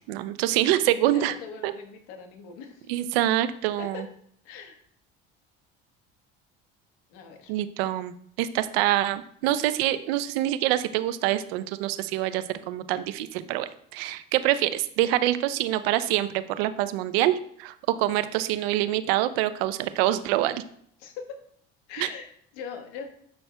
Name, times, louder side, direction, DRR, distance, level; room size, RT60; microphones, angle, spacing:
voice 1, 0.1-1.4 1.6-1.7 2.9-4.1 7.5-20.6 22.0-22.1, right 13 dB, 85° right, 13 dB, 0.6 m, -25 dB
voice 2, 1.1-2.9 3.8-4.0 4.4-4.8 7.1-7.5 21.0-21.2 21.9-23.1, left 6 dB, 80° left, 5 dB, 1.3 m, -41 dB
9.0 x 6.3 x 2.3 m, 0.66 s
supercardioid pair, 75°, 30 cm